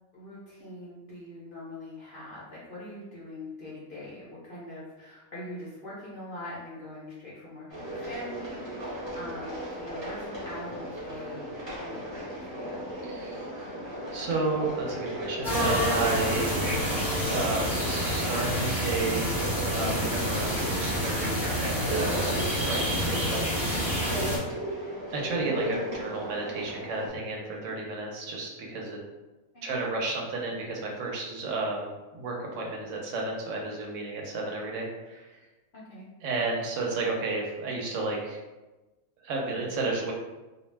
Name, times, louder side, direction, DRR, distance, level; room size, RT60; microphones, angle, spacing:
voice 1, 0.1-12.9 29.5-29.7 35.7-36.1, left 1 dB, 55° left, -7 dB, 0.6 m, -43 dB
sound 1, 7.7-27.1, right 1 dB, 25° right, 0.7 m, -36 dB
voice 2, 13.0-13.8 14.1-17.0 17.3-24.2 25.1-29.0 29.6-35.4 36.2-38.4 39.2-40.1, right 3 dB, 70° right, -1 dB, 0.9 m, -32 dB
sound 2, 15.4-24.4, equal, ahead, 0.4 m, -28 dB
2.3 x 2.1 x 3.1 m, 1.1 s
omnidirectional pair, 1.4 m